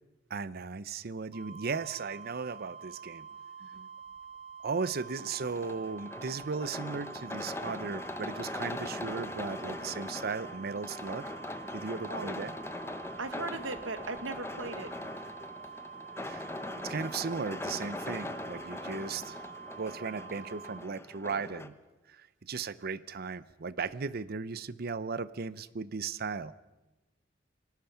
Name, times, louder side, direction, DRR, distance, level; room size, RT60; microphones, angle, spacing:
voice 1, 0.3-3.3 4.6-11.3 11.7-12.5 16.2-16.5 16.8-19.4 19.8-21.8 22.1-26.5, right 5 dB, 55° right, 17 dB, 0.6 m, -36 dB
sound 1, 1.3-20.8, right 6 dB, 35° right, 1.7 m, -47 dB
sound 2, 5.1-21.7, left 2 dB, 15° left, 0.9 m, -41 dB
voice 2, 13.2-14.9, right 3 dB, 80° right, 10 dB, 1.6 m, -38 dB
28.5 x 19.5 x 5.7 m, 1.1 s
head